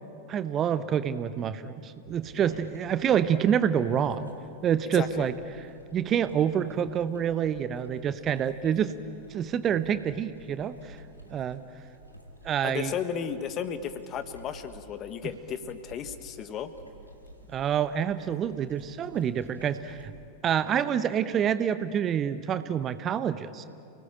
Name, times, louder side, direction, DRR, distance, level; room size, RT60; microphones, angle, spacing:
voice 1, 0.3-4.3 4.6-5.3 5.9-8.9 9.3-11.0 11.3-11.6 12.4-12.9 17.5-20.1 20.4-23.6, right 8 dB, 30° right, 13 dB, 0.8 m, -27 dB
sound 1, 2.0-20.1, equal, 90° left, 2.8 m, -52 dB
voice 2, 4.9-5.3 12.6-16.7, left 8 dB, 30° left, 11 dB, 1.4 m, -34 dB
29.0 x 19.0 x 8.8 m, 2.6 s
figure-of-eight pair, 90°, 0 cm